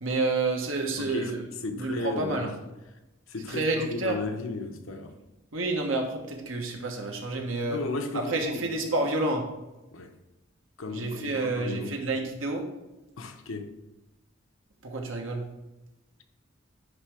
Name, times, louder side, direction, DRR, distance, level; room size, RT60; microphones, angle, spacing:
voice 1, 0.0-1.4 1.8-2.5 3.5-4.2 5.5-7.8 8.1-9.4 10.9-12.6 14.8-15.4, right 2 dB, 80° right, 1.4 m, -29 dB
voice 2, 1.0-1.3 1.6-2.6 3.3-5.2 7.7-8.6 9.9-10.1 10.8-12.0 13.2-13.8, left 3 dB, 90° left, 0.8 m, -35 dB
9.8 x 3.4 x 4.9 m
head